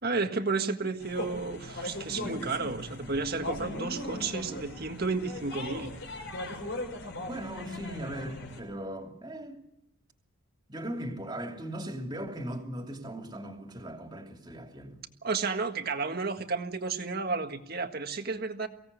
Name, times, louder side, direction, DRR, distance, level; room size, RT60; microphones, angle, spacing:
voice 1, 0.0-5.9 15.2-18.7, right 4 dB, 50° right, 1.7 m, -32 dB
sound 1, 1.0-8.6, left 1 dB, 60° left, 5.1 m, -39 dB
voice 2, 2.1-2.5 4.5-4.7 7.3-9.6 10.7-15.0, right 1 dB, 20° right, 2.9 m, -39 dB
23.5 x 17.0 x 8.2 m
head